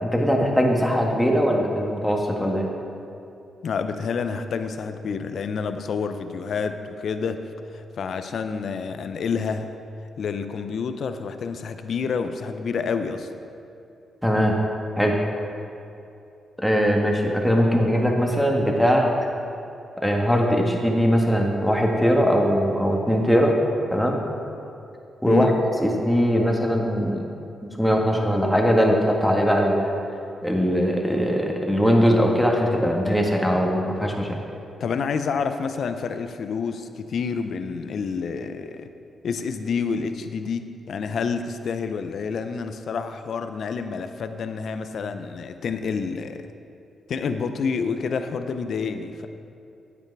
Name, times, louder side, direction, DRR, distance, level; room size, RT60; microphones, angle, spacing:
voice 1, 0.0-2.7 14.2-14.6 14.9-15.3 16.6-19.1 20.0-23.6 23.9-24.2 25.2-25.5 25.8-27.2 27.6-29.9 30.4-34.4, equal, 5° left, 0 dB, 1.7 m, -21 dB
voice 2, 3.6-9.7 10.2-13.3 25.3-25.6 34.8-38.9 39.2-46.5 47.1-49.3, left 5 dB, 70° left, 9 dB, 0.6 m, -28 dB
9.0 x 8.2 x 4.7 m, 2.7 s
supercardioid pair, 55°, 0 cm